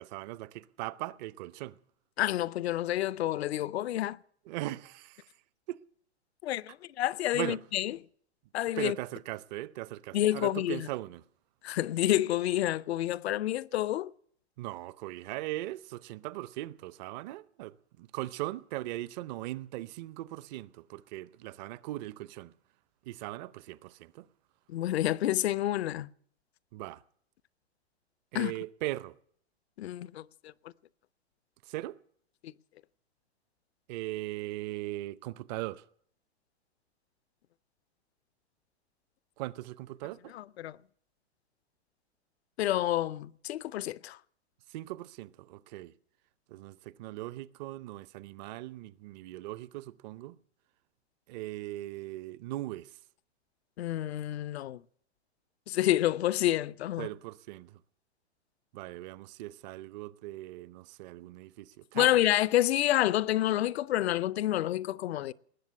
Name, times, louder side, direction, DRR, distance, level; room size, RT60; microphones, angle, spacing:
voice 1, 0.0-1.8 4.5-5.3 5.7-5.8 7.3-7.6 8.8-11.2 14.6-22.5 23.0-24.3 26.7-27.0 28.3-29.2 31.6-32.0 33.9-35.8 39.4-40.3 44.7-45.9 46.5-50.4 51.3-53.0 57.0-57.8 58.7-62.1, right 17 dB, 40° right, 0.6 m, -39 dB
voice 2, 2.2-4.2 6.4-8.0 8.5-9.0 10.1-10.9 11.6-14.1 24.7-26.1 28.3-28.5 29.8-30.5 32.4-32.5 40.3-40.8 42.6-44.2 53.8-54.8 55.7-57.1 61.9-65.3, left 13 dB, 70° left, 0.6 m, -29 dB
19.5 x 7.3 x 9.8 m
hypercardioid pair, 120°, 34 cm